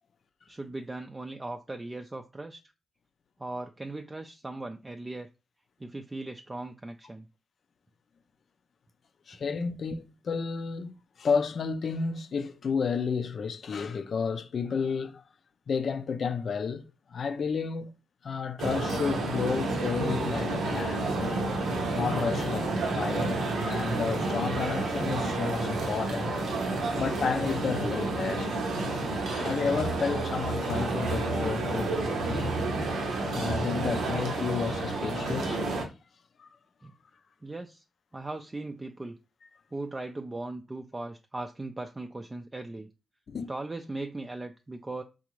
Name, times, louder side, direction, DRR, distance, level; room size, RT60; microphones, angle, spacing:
voice 1, 0.5-2.6 3.4-5.3 5.8-7.3 36.8-36.9 37.4-37.8 38.1-39.2 39.7-42.9 43.5-45.0, right 2 dB, 25° right, 0.4 m, -38 dB
voice 2, 9.3-10.9 11.2-15.2 15.7-16.8 17.1-17.9 18.2-21.4 21.9-26.4 26.9-28.5 29.3-32.6 33.3-35.6 36.4-36.5 43.3-43.5, left 5 dB, 60° left, 0.4 m, -31 dB
sound 1, 18.6-35.8, right 2 dB, 80° right, 0.7 m, -30 dB
3.8 x 2.4 x 3.0 m
cardioid pair, 60°, 0 cm